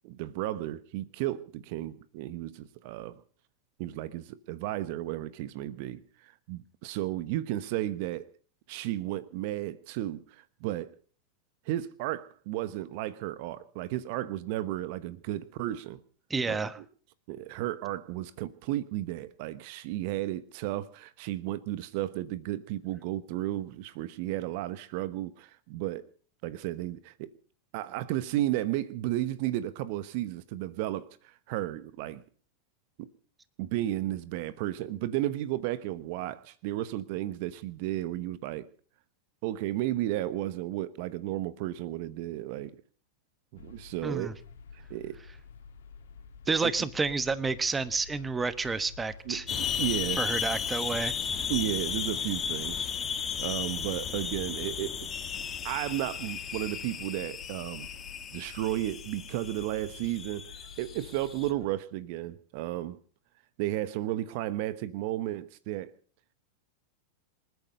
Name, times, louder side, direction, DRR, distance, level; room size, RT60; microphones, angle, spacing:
voice 1, 0.0-3.2 3.8-8.3 8.7-10.9 11.7-16.0 16.5-16.8 17.3-26.1 26.4-27.3 27.7-32.2 33.0-33.1 33.6-38.7 39.4-42.8 43.5-44.3 44.9-45.2 46.5-46.7 49.3-50.2 51.5-52.9 53.4-55.1 55.6-57.9 58.3-60.5 60.8-63.0 63.6-65.9, right 14 dB, 55° right, 1.0 m, -33 dB
voice 2, 16.3-16.8 44.0-44.3 46.5-49.4 50.2-51.1, right 4 dB, 15° right, 1.2 m, -30 dB
sound 1, 43.5-61.7, left 5 dB, 70° left, 3.0 m, -50 dB
sound 2, 49.5-61.5, left 8 dB, 25° left, 1.8 m, -35 dB
27.0 x 9.5 x 5.3 m
hypercardioid pair, 100°, 0 cm